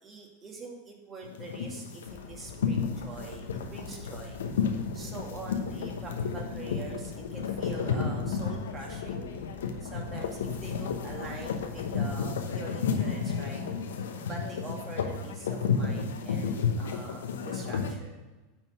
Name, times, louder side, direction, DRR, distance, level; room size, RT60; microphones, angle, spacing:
voice 1, 0.0-4.4 4.9-9.3 9.8-13.6 14.3-18.2, right 4 dB, 25° right, -1 dB, 2.2 m, -44 dB
sound 1, 1.2-17.9, left 6 dB, 75° left, 1.0 m, -32 dB
sound 2, 2.1-12.1, left 2 dB, 10° left, 2.3 m, -49 dB
9.4 x 4.5 x 6.9 m, 1.1 s
hypercardioid pair, 90°, 0 cm